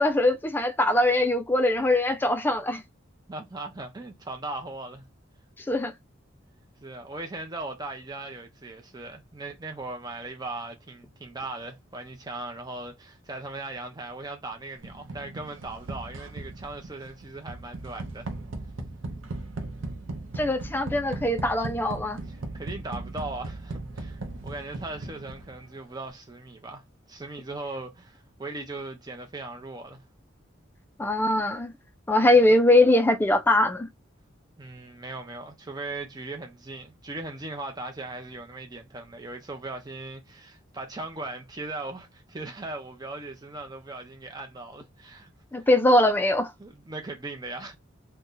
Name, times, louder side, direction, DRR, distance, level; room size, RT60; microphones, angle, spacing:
voice 1, 0.0-2.8 5.6-5.9 20.4-22.2 31.0-31.7 32.1-33.9 45.5-46.5, left 1 dB, 10° left, 0.3 m, -22 dB
voice 2, 3.3-5.1 6.8-18.3 22.3-30.0 32.2-32.5 34.6-45.3 45.6-45.7 46.6-47.8, right 2 dB, 20° right, 0.7 m, -38 dB
sound 1, 14.8-25.7, right 2 dB, 85° right, 0.7 m, -38 dB
2.7 x 2.2 x 3.7 m
head